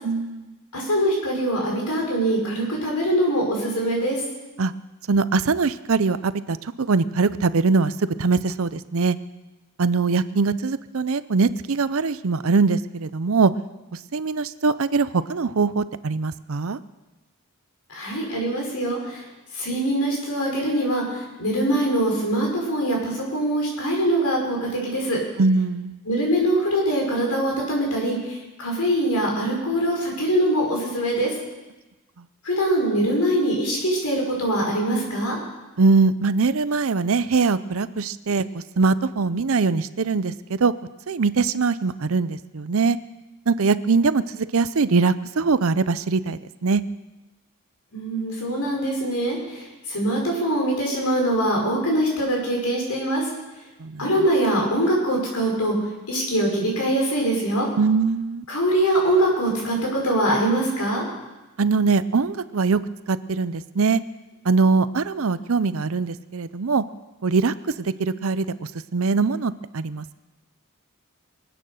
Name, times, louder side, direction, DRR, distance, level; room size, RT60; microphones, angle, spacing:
voice 1, 0.0-0.6 4.6-4.7 5.1-7.9 8.2-9.2 9.8-13.5 14.1-16.8 25.4-26.0 35.8-40.7 41.1-43.0 43.5-46.8 53.8-54.1 57.8-58.4 61.6-62.8 63.1-64.0 64.4-66.8 67.2-70.2, right 4 dB, 70° right, 15 dB, 0.6 m, -22 dB
voice 2, 0.7-4.2 17.9-19.2 19.5-25.2 26.1-31.3 32.4-35.4 47.9-53.3 54.0-55.7 56.1-57.7 58.5-61.1, right 1 dB, 85° left, -1 dB, 5.5 m, -23 dB
23.0 x 9.1 x 6.5 m, 1.1 s
head